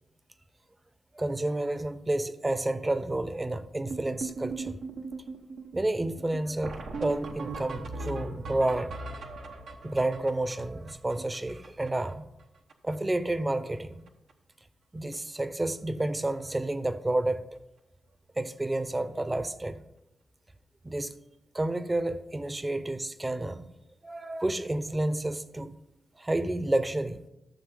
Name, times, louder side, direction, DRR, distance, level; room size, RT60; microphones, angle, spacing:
voice 1, 1.1-4.8 5.7-8.9 9.8-12.3 12.8-14.0 14.9-17.5 18.4-19.8 20.8-21.1 21.5-23.7 24.0-25.7 26.2-27.2, right 1 dB, 25° right, 13 dB, 0.7 m, -30 dB
sound 1, 3.9-12.1 12.4-12.5 12.7-13.0 13.2-13.8 14.1-14.3 15.1-15.2 15.6-15.7 16.0-16.2 18.5-18.6 20.9-21.0, right 3 dB, 75° right, 1.0 m, -39 dB
13.0 x 6.8 x 3.7 m, 0.93 s
supercardioid pair, 50°, 0 cm